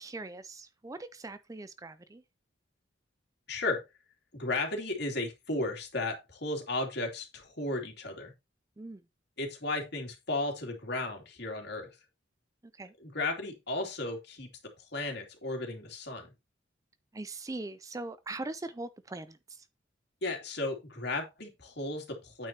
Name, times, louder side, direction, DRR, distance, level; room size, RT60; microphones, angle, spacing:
voice 1, 0.0-2.2 8.8-9.0 12.8-12.9 17.1-19.6, right 2 dB, 15° right, 0.4 m, -41 dB
voice 2, 3.5-3.8 4.3-8.3 9.4-12.0 13.0-14.5 14.8-16.3 20.2-22.5, left 2 dB, 55° left, 2.8 m, -34 dB
9.0 x 8.9 x 2.9 m
head